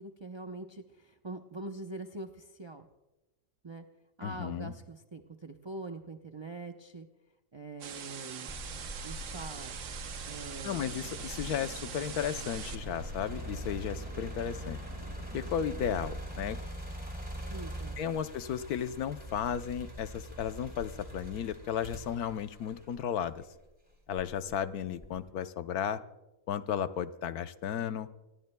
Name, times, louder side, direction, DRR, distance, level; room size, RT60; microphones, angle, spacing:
voice 1, 0.0-2.9 3.6-3.9 4.2-7.1 7.5-8.5 9.0-9.8 10.2-10.9 17.5-18.0, right 2 dB, 35° right, 4 dB, 0.4 m, -43 dB
voice 2, 4.2-4.7 10.6-14.8 15.3-16.6 18.0-23.4 24.1-26.0 26.5-28.1, left 8 dB, 80° left, 11 dB, 1.2 m, -34 dB
sound 1, 7.8-12.8, right 8 dB, 60° right, 1.0 m, -43 dB
sound 2, 8.5-23.5 24.1-25.3, right 1 dB, 5° right, 3.5 m, -43 dB
sound 3, 10.7-16.5, right 2 dB, 75° right, 3.5 m, -49 dB
26.0 x 19.5 x 2.2 m, 1.0 s
omnidirectional pair, 1.6 m